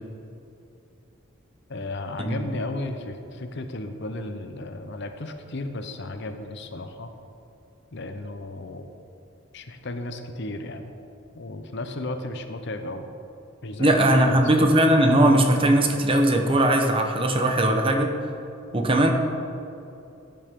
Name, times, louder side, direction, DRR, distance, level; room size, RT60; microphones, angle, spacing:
voice 1, 1.7-7.1 7.9-8.9 9.5-10.9 11.3-13.1 13.6-14.4, left 2 dB, 55° left, 7 dB, 0.8 m, -34 dB
voice 2, 13.8-18.2 18.7-19.1, right 1 dB, 25° right, 3 dB, 0.9 m, -19 dB
15.0 x 9.2 x 3.7 m, 2.7 s
head